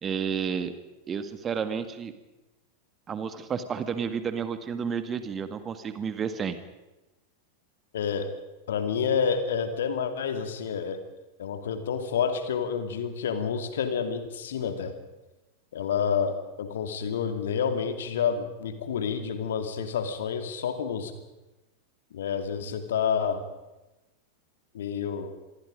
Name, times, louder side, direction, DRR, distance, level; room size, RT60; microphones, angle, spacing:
voice 1, 0.0-0.7 1.0-2.1 3.1-6.6, right 6 dB, 25° right, 10 dB, 1.8 m, -31 dB
voice 2, 7.9-8.3 8.7-11.0 11.4-14.9 15.7-21.1 22.1-23.4 24.7-25.3, left 7 dB, 60° left, 8 dB, 2.6 m, -29 dB
27.0 x 21.5 x 5.3 m, 1.0 s
figure-of-eight pair, 90°, 0 cm